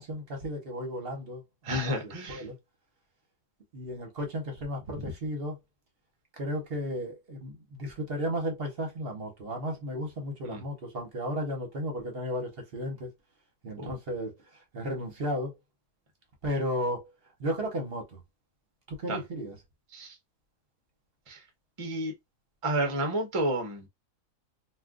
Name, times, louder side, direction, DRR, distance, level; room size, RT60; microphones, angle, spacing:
voice 1, 0.0-1.4 1.7-2.5 3.7-5.6 6.4-13.1 13.6-14.4 14.7-15.5 16.4-17.1 17.4-18.2 18.9-19.6, equal, 50° right, 1.0 m, -34 dB
voice 2, 1.6-2.4 10.4-10.6 13.8-13.9 19.1-19.2 19.9-20.1 21.3-21.4 21.8-22.1 22.6-23.9, right 1 dB, 30° right, 0.6 m, -30 dB
2.5 x 2.4 x 3.5 m
omnidirectional pair, 1.5 m